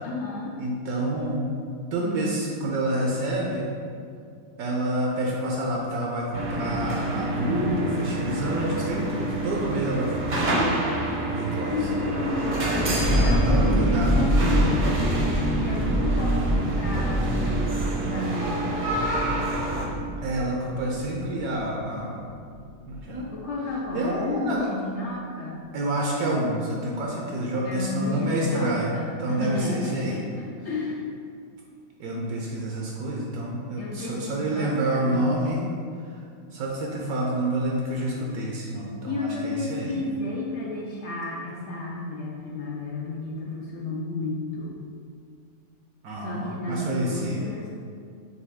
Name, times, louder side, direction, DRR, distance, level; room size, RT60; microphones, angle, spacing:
voice 1, 0.0-0.6 8.3-9.5 11.5-18.8 23.3-25.6 27.6-31.1 33.8-35.7 39.0-44.8 46.2-47.7, left 2 dB, 70° left, -3 dB, 0.7 m, -32 dB
voice 2, 0.6-1.5 1.9-3.7 4.6-10.5 11.3-11.9 13.1-14.1 20.2-22.2 22.9-23.3 23.9-24.7 25.7-28.9 29.2-30.2 32.0-35.7 36.5-39.9 46.0-47.5, right 1 dB, 70° right, -2 dB, 1.1 m, -28 dB
sound 1, 6.3-19.9, right 1 dB, 45° right, 0.6 m, -28 dB
sound 2, 12.6-22.1 22.3-22.4 22.7-23.0, equal, 5° left, 0.5 m, -25 dB
6.4 x 2.3 x 3.5 m, 2.3 s
omnidirectional pair, 1.7 m